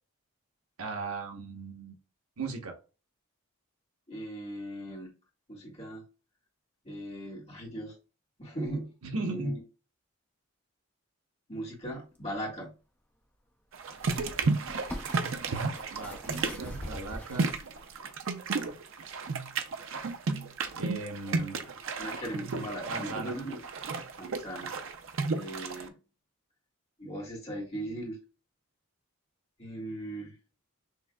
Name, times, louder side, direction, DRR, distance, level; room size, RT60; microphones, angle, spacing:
voice 1, 0.8-2.0 2.4-2.8 9.0-9.6 15.9-17.5 20.7-21.6 22.9-23.3, right 3 dB, 85° right, 3 dB, 1.0 m, -37 dB
voice 2, 4.1-5.1 5.5-6.0 6.8-7.9 8.4-8.9 9.2-9.6 11.5-12.7 21.3-21.5 22.0-23.6 24.2-24.7 25.3-25.9 27.0-28.2 29.6-30.4, right 1 dB, 30° left, -4 dB, 1.7 m, -38 dB
sound 1, 12.1-12.2 13.9-17.9 18.5-18.7, equal, 10° left, 0.5 m, -43 dB
sound 2, 13.7-25.9, right 4 dB, 60° right, 0.5 m, -33 dB
6.3 x 2.7 x 2.3 m, 0.33 s
head